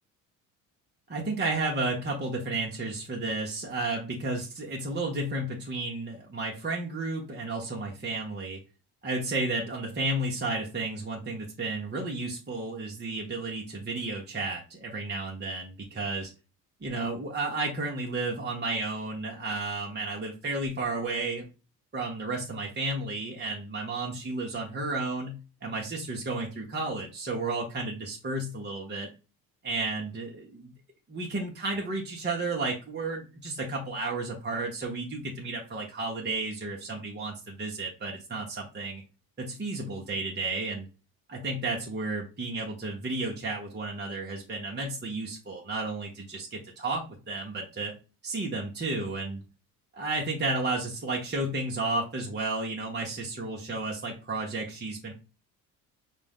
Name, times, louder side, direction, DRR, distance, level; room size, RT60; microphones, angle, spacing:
voice 1, 1.1-8.6 9.0-16.3 16.8-21.4 21.9-29.1 29.6-30.7 31.1-39.0 39.4-40.9 41.3-47.9 48.2-49.4 49.9-55.1, right 2 dB, 25° right, -1 dB, 1.1 m, -32 dB
5.1 x 2.4 x 3.5 m, 0.32 s
hypercardioid pair, 55°, 44 cm